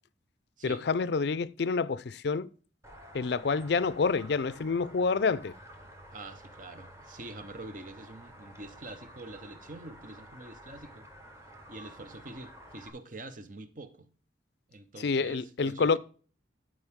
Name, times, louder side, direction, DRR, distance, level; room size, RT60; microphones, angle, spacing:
voice 1, 0.6-2.5 3.1-5.5 15.0-16.0, left 4 dB, 65° left, 0.4 m, -28 dB
sound 1, 2.8-12.9, equal, 15° right, 1.3 m, -51 dB
voice 2, 6.1-11.1 11.7-14.1 14.7-16.0, right 2 dB, 45° right, 0.9 m, -45 dB
12.5 x 4.8 x 3.6 m
head